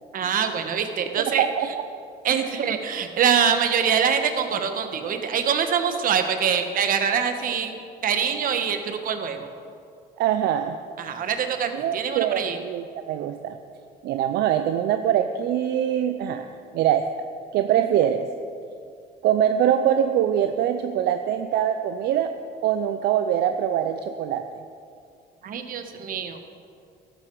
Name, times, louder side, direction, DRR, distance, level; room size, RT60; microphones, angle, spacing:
voice 1, 0.1-1.4 2.2-7.7 8.0-9.5 11.0-12.6 25.4-26.4, right 7 dB, 55° right, 7 dB, 1.3 m, -24 dB
voice 2, 10.2-10.8 11.7-13.6 14.0-16.5 16.7-17.0 17.5-18.3 19.2-22.3 22.6-24.4, right 10 dB, 75° right, 8 dB, 0.6 m, -23 dB
12.5 x 12.5 x 4.7 m, 2.4 s
cardioid pair, 110°, 17 cm